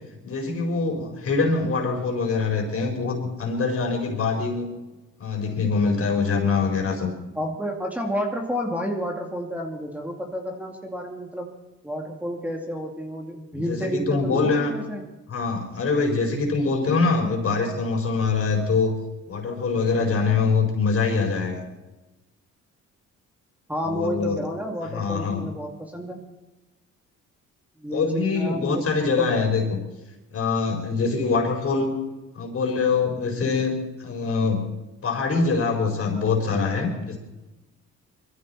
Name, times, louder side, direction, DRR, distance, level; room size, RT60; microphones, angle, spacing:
voice 1, 0.2-4.7 5.2-7.1 13.5-14.7 15.3-18.9 19.3-21.6 23.8-24.4 24.9-25.4 27.9-29.8 30.3-32.0 32.3-34.6 35.0-37.2, left 4 dB, 50° left, 2 dB, 4.8 m, -24 dB
voice 2, 7.3-11.5 11.8-15.0 23.7-26.2 27.8-29.3, equal, 5° right, 1 dB, 2.5 m, -30 dB
22.0 x 14.5 x 4.3 m, 1.1 s
cardioid pair, 90°, 30 cm